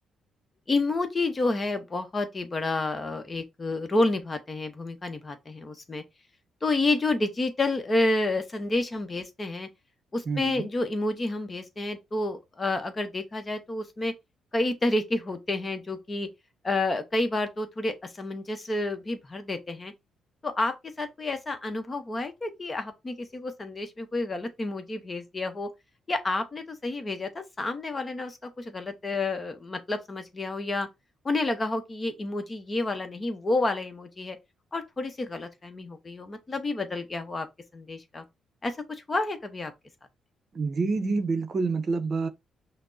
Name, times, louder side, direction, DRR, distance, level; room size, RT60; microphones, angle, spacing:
voice 1, 0.7-6.0 6.6-9.7 10.1-14.1 14.5-16.3 16.6-19.9 20.4-25.7 26.1-30.9 31.2-34.4 34.7-37.5 37.7-38.2 38.6-39.7, left 2 dB, 30° left, 0.8 m, -29 dB
voice 2, 10.3-10.7 40.5-42.3, right 4 dB, 45° right, 0.6 m, -27 dB
5.7 x 2.0 x 2.6 m
cardioid pair, 90°, 0 cm